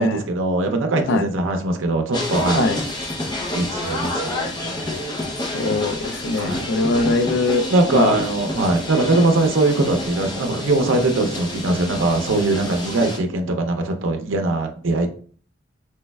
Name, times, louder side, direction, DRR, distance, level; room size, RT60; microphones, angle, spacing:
voice 1, 0.0-2.7 3.5-4.9 6.4-6.7 7.7-15.1, right 2 dB, 80° right, 4 dB, 0.5 m, -21 dB
sound 1, 2.1-13.2, left 1 dB, 20° left, 0.6 m, -28 dB
voice 2, 2.5-2.8 5.5-7.7 7.9-8.2, left 3 dB, 65° left, 9 dB, 0.4 m, -21 dB
3.3 x 3.1 x 2.2 m, 0.43 s
head